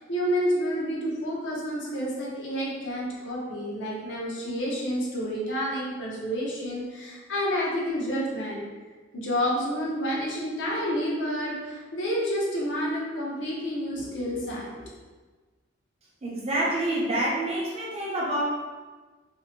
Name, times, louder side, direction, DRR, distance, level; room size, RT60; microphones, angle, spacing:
voice 1, 0.0-8.6 9.1-14.7, equal, 70° left, -4 dB, 0.7 m, -29 dB
voice 2, 16.2-18.4, right 1 dB, 35° right, -4 dB, 0.5 m, -27 dB
2.6 x 2.0 x 2.9 m, 1.3 s
head